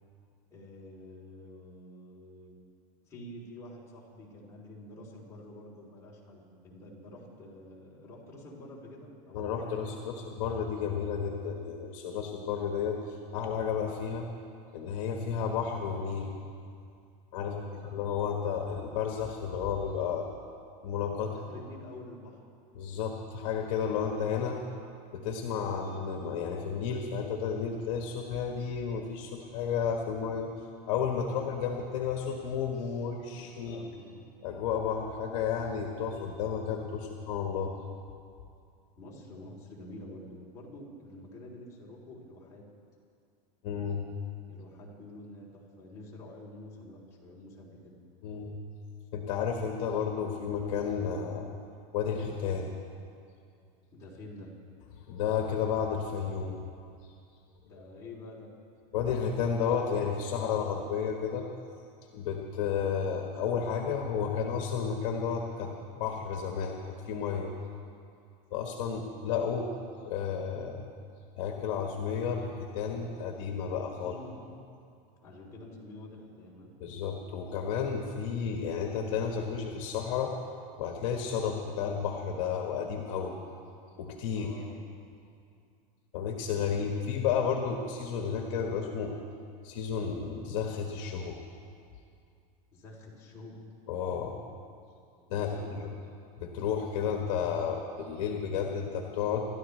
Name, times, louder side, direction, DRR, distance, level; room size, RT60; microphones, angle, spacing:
voice 1, 0.5-2.5 3.0-10.3 17.4-17.9 21.2-22.4 32.7-33.1 33.3-34.3 39.0-42.6 44.5-48.0 53.9-54.5 57.6-58.5 73.9-74.5 75.2-76.7 84.3-84.8 92.7-93.5 95.3-96.0, left 1 dB, 15° left, -6 dB, 3.2 m, -48 dB
voice 2, 9.3-14.3 14.7-16.3 17.3-17.5 17.9-20.3 20.8-21.3 22.7-24.6 25.1-30.5 30.9-33.8 34.4-37.7 43.6-44.1 48.2-48.5 49.1-51.5 51.9-52.7 55.1-56.6 58.9-61.4 62.1-65.7 66.0-67.5 68.5-69.7 70.0-70.9 71.4-74.2 76.8-80.3 80.8-83.4 84.0-84.5 86.1-89.1 89.6-91.4 93.9-94.4 95.3-95.5 96.4-99.5, left 7 dB, 55° left, 1 dB, 1.5 m, -32 dB
27.0 x 13.0 x 3.3 m, 2.4 s
supercardioid pair, 175°, 20 cm